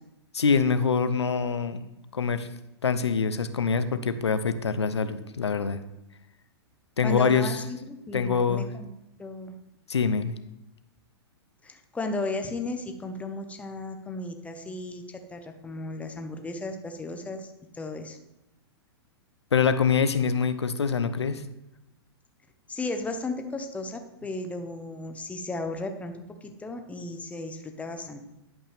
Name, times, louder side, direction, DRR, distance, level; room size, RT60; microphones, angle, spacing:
voice 1, 0.3-1.8 2.1-2.5 2.8-5.8 7.0-7.6 8.1-8.7 9.9-10.4 19.5-21.4, left 5 dB, 85° left, 11 dB, 0.7 m, -25 dB
voice 2, 7.0-8.9 9.2-9.5 11.6-18.2 22.7-28.2, left 2 dB, 10° left, 5 dB, 0.9 m, -35 dB
11.0 x 5.5 x 3.4 m, 0.91 s
figure-of-eight pair, 110°, 14 cm